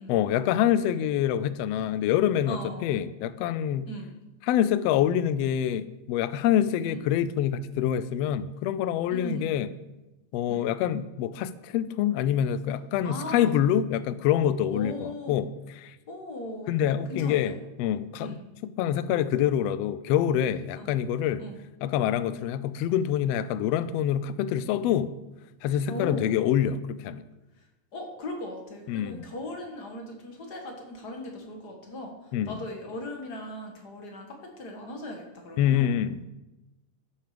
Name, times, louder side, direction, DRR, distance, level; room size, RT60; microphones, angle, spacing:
voice 1, 0.1-3.9 4.4-9.7 10.3-15.5 15.8-16.0 16.7-21.4 21.8-25.1 25.6-27.2 28.9-29.3 32.3-32.6 35.6-36.3, left 10 dB, 80° left, 1.5 m, -26 dB
voice 2, 2.4-3.0 3.9-4.1 6.8-7.0 9.1-9.5 10.5-10.6 13.0-13.6 14.7-15.4 16.1-16.8 17.1-17.5 18.2-18.4 20.8-20.9 21.4-21.6 25.9-26.3 27.9-36.1, left 1 dB, 40° left, 1.8 m, -38 dB
13.5 x 7.2 x 5.1 m
omnidirectional pair, 3.4 m